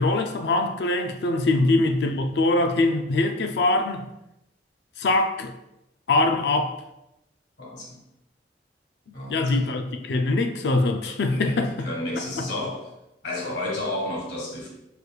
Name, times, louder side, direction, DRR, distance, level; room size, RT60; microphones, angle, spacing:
voice 1, 0.0-4.1 5.0-5.5 6.1-6.7 9.3-11.7, left 2 dB, 70° left, 5 dB, 0.4 m, -23 dB
voice 2, 1.5-1.9 6.3-6.4 7.6-8.0 9.1-9.7 11.3-12.9 13.2-14.7, left 1 dB, 85° left, -1 dB, 1.4 m, -32 dB
4.8 x 4.8 x 2.3 m, 0.88 s
head